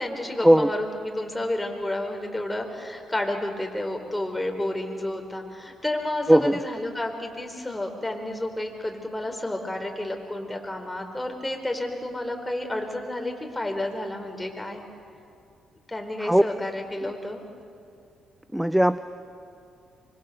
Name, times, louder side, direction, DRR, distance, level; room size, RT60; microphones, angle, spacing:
voice 1, 0.0-14.8 15.9-17.4, left 1 dB, 10° left, 3 dB, 4.4 m, -31 dB
voice 2, 6.3-6.6 16.2-16.4 18.5-19.0, right 1 dB, 5° right, 14 dB, 0.7 m, -18 dB
25.0 x 23.5 x 6.7 m, 2.4 s
hypercardioid pair, 50°, 0 cm